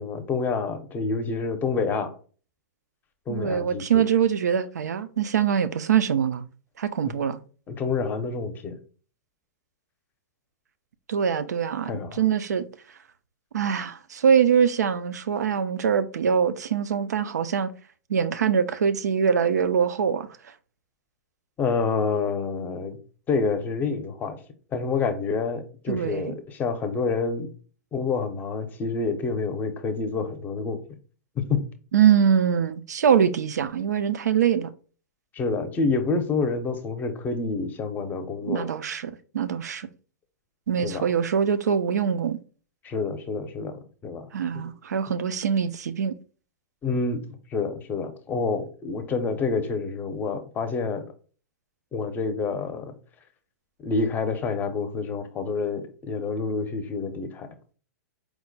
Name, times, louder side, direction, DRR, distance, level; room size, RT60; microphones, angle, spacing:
voice 1, 0.0-2.1 3.3-4.1 7.7-8.8 11.9-12.2 21.6-23.0 23.3-24.4 24.7-27.5 27.9-30.8 31.4-31.6 35.3-38.7 40.8-41.0 42.8-44.3 46.8-51.1 51.9-52.9 53.8-57.5, left 4 dB, 20° left, 0.6 m, -28 dB
voice 2, 3.3-6.4 6.8-7.4 11.1-12.6 13.5-17.7 18.1-20.3 25.9-26.3 31.9-34.7 38.4-39.9 40.7-42.4 44.3-46.1, right 8 dB, 85° right, 0.4 m, -23 dB
4.6 x 2.1 x 3.9 m
hypercardioid pair, 130°, 9 cm